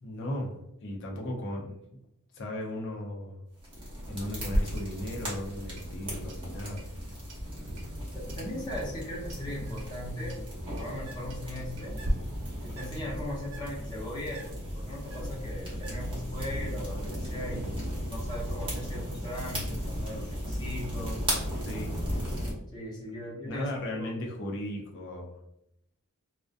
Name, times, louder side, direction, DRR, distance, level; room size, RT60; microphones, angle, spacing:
voice 1, 0.0-1.8 2.3-3.4 4.1-6.9 21.6-21.9 23.5-25.4, left 1 dB, 55° left, 0 dB, 0.5 m, -36 dB
sound 1, 3.6-22.5, equal, 20° right, 0.8 m, -36 dB
Clock, 4.4-12.1, equal, 90° right, 0.5 m, -39 dB
voice 2, 8.1-10.4 10.8-12.0 12.6-17.8 18.1-21.3 22.7-24.2, left 1 dB, 20° left, -5 dB, 0.8 m, -38 dB
Bird, 8.6-16.4, right 2 dB, 60° right, 0.8 m, -53 dB
2.4 x 2.1 x 2.5 m, 0.77 s
head